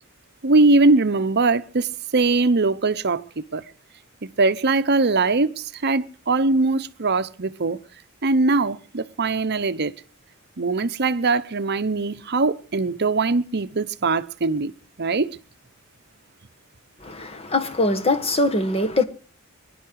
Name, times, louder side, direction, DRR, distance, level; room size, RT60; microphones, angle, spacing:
voice 1, 0.4-3.6 4.2-7.8 8.2-9.9 10.6-14.7 15.0-15.3, right 3 dB, 50° right, 0.8 m, -21 dB
voice 2, 17.0-19.0, left 2 dB, 30° left, 1.5 m, -22 dB
24.0 x 11.0 x 4.7 m
head